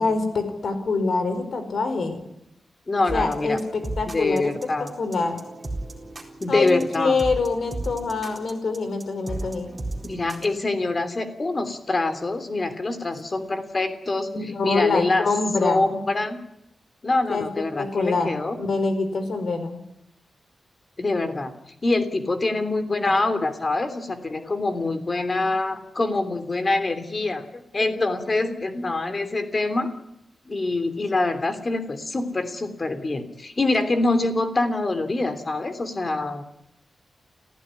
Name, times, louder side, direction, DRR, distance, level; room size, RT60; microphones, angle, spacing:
voice 1, 0.0-2.2 3.1-4.5 5.0-5.4 6.5-9.7 14.3-15.8 17.3-19.8, left 3 dB, 60° left, 9 dB, 4.7 m, -25 dB
voice 2, 2.9-3.6 4.0-4.9 6.4-7.1 10.0-14.3 14.6-15.3 15.6-16.4 17.0-18.6 21.0-21.5 21.8-29.9 30.4-36.4, left 2 dB, 30° left, 10 dB, 3.1 m, -25 dB
sound 1, 3.1-10.6, right 2 dB, 20° right, 4.1 m, -35 dB
29.5 x 15.5 x 9.9 m, 0.81 s
wide cardioid pair, 150°, 0 cm